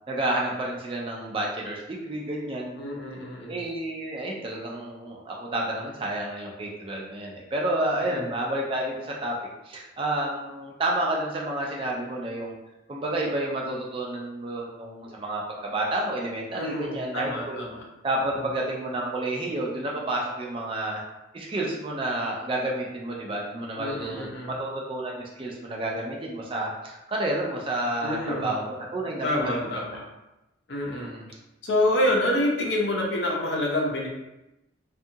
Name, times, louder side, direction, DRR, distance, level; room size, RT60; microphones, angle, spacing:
voice 1, 0.1-2.8 3.5-9.4 9.6-12.5 12.9-17.6 18.0-21.0 21.3-29.6 30.9-31.2, right 1 dB, 25° right, -2 dB, 0.4 m, -30 dB
voice 2, 2.8-3.6 8.1-8.3 16.5-17.8 18.2-18.5 23.8-24.6 28.0-28.5 29.2-30.1 30.7-31.1 31.6-34.1, left 1 dB, 65° left, -2 dB, 0.6 m, -27 dB
2.7 x 2.3 x 2.7 m, 0.94 s
head